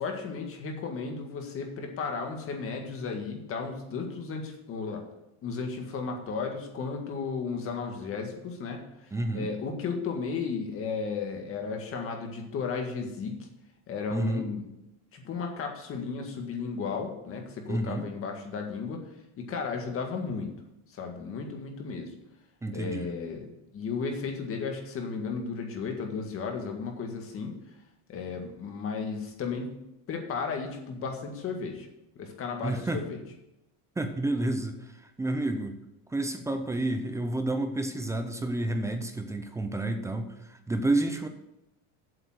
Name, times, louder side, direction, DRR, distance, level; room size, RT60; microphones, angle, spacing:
voice 1, 0.0-5.0 5.4-13.5 13.9-14.6 15.1-19.0 19.4-20.5 20.9-22.1 22.7-23.5 23.7-27.6 28.1-29.8 30.1-31.9 32.2-33.2, left 5 dB, 35° left, 3 dB, 1.9 m, -34 dB
voice 2, 9.1-9.5 14.1-14.5 17.7-18.1 22.6-23.1 32.6-33.0 34.0-34.8 35.2-35.8 36.1-41.3, right 2 dB, 10° right, 7 dB, 0.6 m, -30 dB
8.0 x 7.2 x 7.8 m, 0.89 s
cardioid pair, 155°, 39 cm